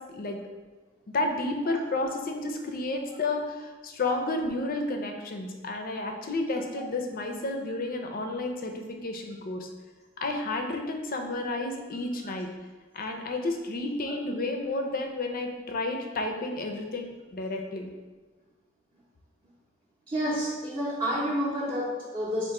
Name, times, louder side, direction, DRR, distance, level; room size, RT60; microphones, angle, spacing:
voice 1, 0.1-0.4 1.1-9.7 10.2-12.5 12.9-17.9, left 2 dB, 45° left, 4 dB, 0.5 m, -31 dB
voice 2, 20.1-22.5, equal, 25° right, -8 dB, 0.7 m, -29 dB
3.7 x 2.5 x 4.6 m, 1.3 s
head